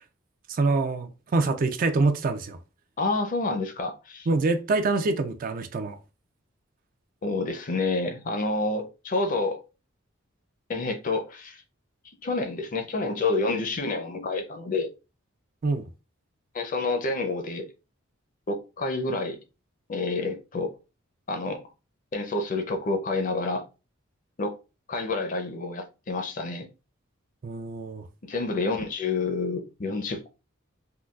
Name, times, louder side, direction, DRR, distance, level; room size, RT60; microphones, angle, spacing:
voice 1, 0.5-2.6 4.3-6.0 15.6-15.8 27.4-28.1, right 3 dB, 40° right, 0.3 m, -25 dB
voice 2, 3.0-4.3 7.2-9.6 10.7-11.6 12.2-14.9 16.5-17.7 18.5-19.4 19.9-20.7 21.3-21.6 22.1-23.6 24.4-24.6 24.9-26.7 28.2-30.3, left 3 dB, 40° left, 0.5 m, -28 dB
3.7 x 2.3 x 2.3 m
head